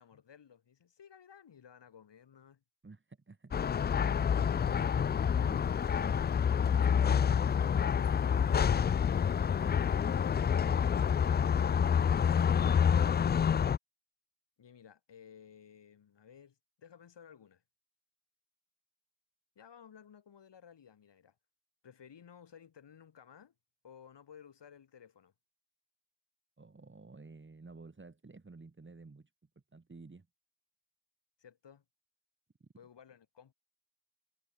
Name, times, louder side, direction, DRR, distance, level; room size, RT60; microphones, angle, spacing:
voice 1, 0.0-2.6 14.6-17.6 19.5-21.3 21.8-23.5 23.8-25.3 31.4-31.8 32.7-33.5, left 8 dB, 60° left, 3.5 m, -56 dB
voice 2, 2.8-3.7 4.4-5.7 9.6-9.9 26.6-29.3 29.7-30.3 32.6-32.7, right 3 dB, 25° right, 1.9 m, -52 dB
sound 1, 3.5-13.8, left 7 dB, 25° left, 0.3 m, -28 dB
hypercardioid pair, 40°, 48 cm